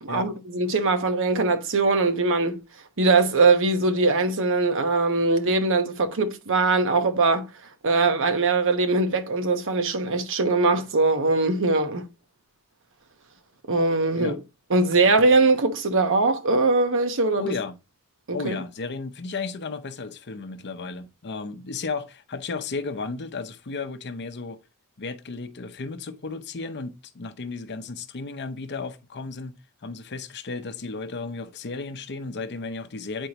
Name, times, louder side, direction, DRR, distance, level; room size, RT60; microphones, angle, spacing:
voice 1, 0.0-2.6 3.0-7.5 7.8-12.1 13.7-14.3 14.7-17.4 18.3-18.6, right 3 dB, 60° right, 1.0 m, -21 dB
voice 2, 17.4-17.8 18.3-24.6 25.0-33.3, left 4 dB, 50° left, 0.7 m, -34 dB
9.0 x 4.5 x 2.9 m
head